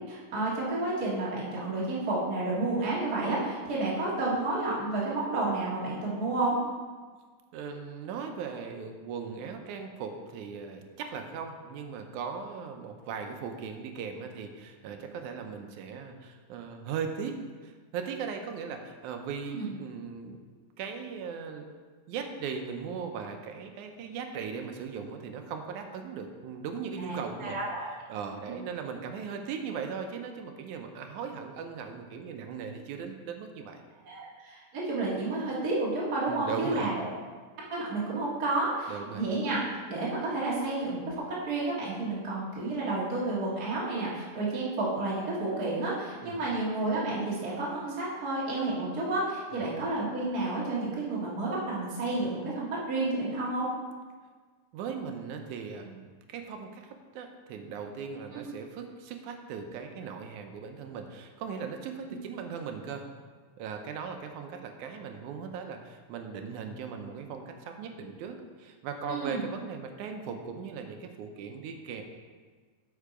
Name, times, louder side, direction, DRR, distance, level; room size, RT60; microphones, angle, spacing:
voice 1, 0.1-6.5 19.5-19.7 27.0-27.1 27.4-27.9 34.0-37.1 37.7-39.6 39.9-53.7 58.3-58.4 69.1-69.4, right 2 dB, 40° right, -7 dB, 1.7 m, -31 dB
voice 2, 7.5-20.4 20.8-21.7 22.1-27.6 28.1-33.8 36.3-36.9 38.9-39.2 46.2-46.4 49.5-49.8 54.7-63.1 63.6-72.0, right 6 dB, 80° right, 5 dB, 2.1 m, -38 dB
8.2 x 5.6 x 5.0 m, 1.5 s
omnidirectional pair, 3.5 m